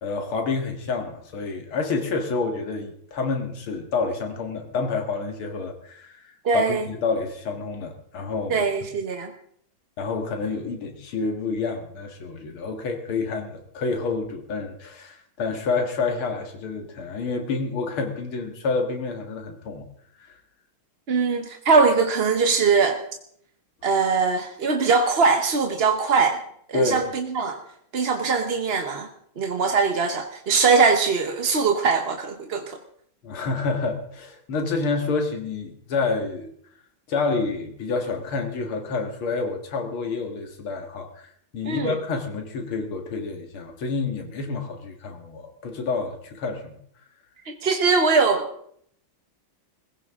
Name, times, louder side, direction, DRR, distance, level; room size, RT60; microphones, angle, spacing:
voice 1, 0.0-8.6 10.0-19.9 20.2-20.3 26.7-27.0 33.2-36.5 37.1-41.3 41.5-46.8, left 4 dB, 85° left, 4 dB, 2.6 m, -28 dB
voice 2, 6.4-6.8 8.5-9.3 21.1-23.0 23.8-26.4 26.7-27.6 27.9-29.1 29.4-32.8 41.6-41.9 47.4-48.5, right 4 dB, 45° right, 5 dB, 0.9 m, -21 dB
20.5 x 16.0 x 3.6 m, 0.66 s
omnidirectional pair, 2.3 m